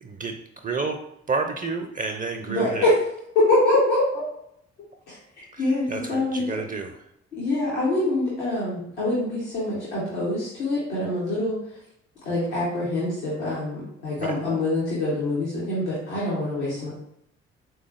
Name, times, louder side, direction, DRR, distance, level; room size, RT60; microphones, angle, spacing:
voice 1, 0.0-0.3 0.6-1.0 1.3-2.9 5.5-6.9 14.2-14.3, right 4 dB, 25° right, 4 dB, 0.4 m, -30 dB
voice 2, 2.5-2.9 3.3-4.2 5.1-5.2 5.6-6.4 7.3-11.6 12.2-16.9, left 2 dB, 90° left, -9 dB, 1.0 m, -25 dB
3.7 x 2.9 x 2.4 m, 0.75 s
hypercardioid pair, 40°, 33 cm